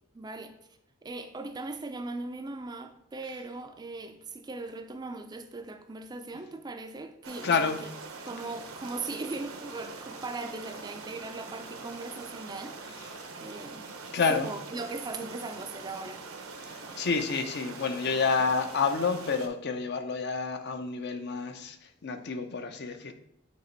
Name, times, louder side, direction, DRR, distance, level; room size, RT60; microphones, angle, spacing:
voice 1, 0.1-0.5 1.0-7.7 8.2-13.1 13.4-13.9 14.3-16.3, right 3 dB, 20° right, 7 dB, 0.3 m, -39 dB
sound 1, 7.2-19.5, right 4 dB, 85° right, 0.9 m, -43 dB
voice 2, 7.4-7.8 13.2-13.3 14.1-14.5 16.6-21.8 22.0-23.1, left 5 dB, 55° left, 8 dB, 0.6 m, -29 dB
8.2 x 3.0 x 4.4 m, 0.80 s
head